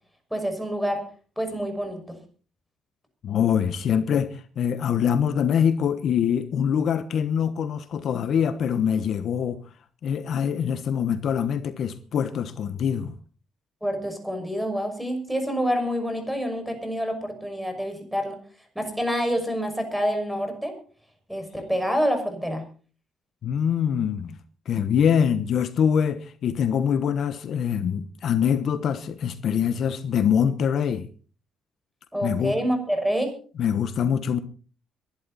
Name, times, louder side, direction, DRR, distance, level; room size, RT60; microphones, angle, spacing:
voice 1, 0.3-1.0 1.4-2.2 13.8-18.4 18.7-20.8 21.3-22.6 32.1-33.4, equal, ahead, 5.9 m, -27 dB
voice 2, 3.2-9.6 10.0-13.1 23.4-24.4 24.7-31.1 32.2-32.6 33.6-34.4, left 8 dB, 65° left, 1.1 m, -24 dB
23.0 x 11.5 x 4.2 m
cardioid pair, 90°, 0 cm